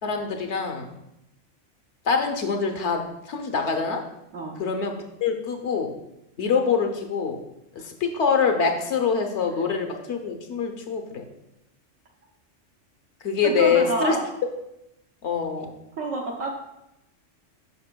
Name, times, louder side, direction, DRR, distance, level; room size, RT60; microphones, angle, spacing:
voice 1, 0.0-0.9 2.1-3.0 3.3-4.0 4.6-4.9 5.2-5.9 6.4-7.4 8.0-11.2 13.2-14.2 15.2-15.7, left 6 dB, 65° left, 5 dB, 1.1 m, -24 dB
voice 2, 13.4-14.2 16.0-16.5, right 3 dB, 75° right, 0 dB, 1.1 m, -28 dB
8.4 x 5.9 x 2.2 m, 0.87 s
omnidirectional pair, 1.3 m